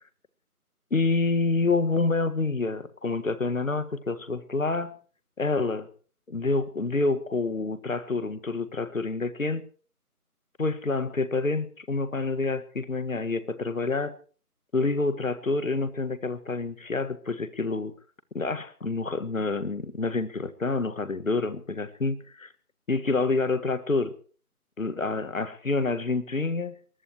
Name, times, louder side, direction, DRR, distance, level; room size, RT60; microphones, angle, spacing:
voice 1, 0.9-4.9 5.4-5.9 6.3-9.7 10.6-14.1 14.7-17.9 18.3-22.5 22.9-24.1 24.8-26.7, left 3 dB, 60° left, 13 dB, 1.7 m, -27 dB
24.0 x 19.5 x 3.0 m, 0.40 s
figure-of-eight pair, 170°, 46 cm